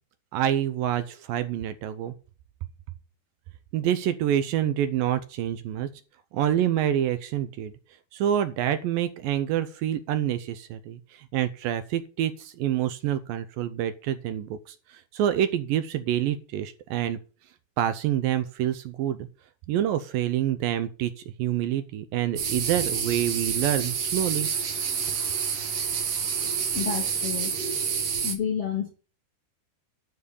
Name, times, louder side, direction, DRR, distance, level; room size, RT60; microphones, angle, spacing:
voice 1, 0.3-2.1 3.7-5.9 6.3-7.7 8.1-17.2 17.8-19.3 19.7-21.1 21.4-24.5, right 11 dB, 75° right, 11 dB, 2.2 m, -27 dB
sound 1, 22.4-28.3, right 6 dB, 50° right, 2.0 m, -28 dB
voice 2, 26.7-27.5 27.9-28.9, left 7 dB, 60° left, 3 dB, 1.6 m, -30 dB
12.5 x 4.6 x 8.3 m, 0.37 s
omnidirectional pair, 4.6 m